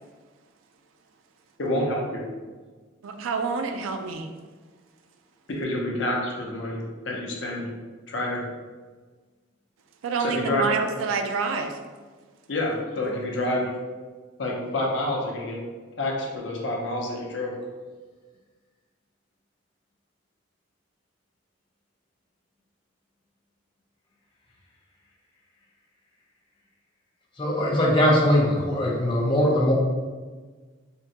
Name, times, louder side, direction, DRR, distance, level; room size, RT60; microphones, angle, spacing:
voice 1, 1.6-2.3 5.5-7.7 8.1-8.4 10.2-10.8 12.5-13.7 14.4-15.6 16.0-17.5, left 1 dB, 65° left, -2 dB, 0.6 m, -28 dB
voice 2, 3.0-4.3 10.0-11.8, right 4 dB, 80° right, 6 dB, 0.3 m, -27 dB
voice 3, 27.4-29.7, equal, 25° left, -3 dB, 0.5 m, -21 dB
3.5 x 2.1 x 2.7 m, 1.4 s
head